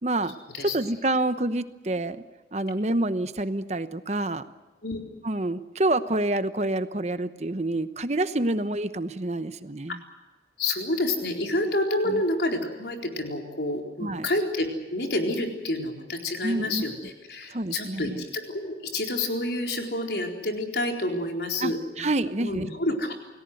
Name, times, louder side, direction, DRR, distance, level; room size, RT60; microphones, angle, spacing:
voice 1, 0.0-0.3 0.6-2.2 2.5-4.4 5.2-10.0 12.1-12.2 14.0-14.3 16.4-16.8 17.5-18.2 21.6-21.7 22.0-22.7, right 2 dB, 40° right, 12 dB, 1.0 m, -27 dB
voice 2, 10.6-22.1 22.4-23.1, left 1 dB, 70° left, 3 dB, 4.2 m, -29 dB
28.5 x 18.5 x 7.9 m, 1.2 s
head